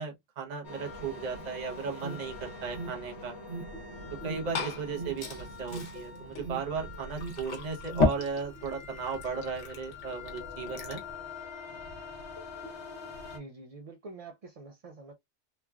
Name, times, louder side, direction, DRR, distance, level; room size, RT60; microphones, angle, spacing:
voice 1, 0.0-3.3 4.2-11.0, right 5 dB, 45° right, 0.8 m, -36 dB
sound 1, 0.6-13.4, left 4 dB, 70° left, 1.3 m, -45 dB
Alarm, 1.4-8.1, right 3 dB, 85° right, 1.1 m, -43 dB
Liquid, 4.0-11.1, left 3 dB, 85° left, 1.2 m, -35 dB
voice 2, 13.3-15.1, right 3 dB, 60° right, 0.3 m, -46 dB
3.2 x 2.3 x 2.2 m
omnidirectional pair, 1.2 m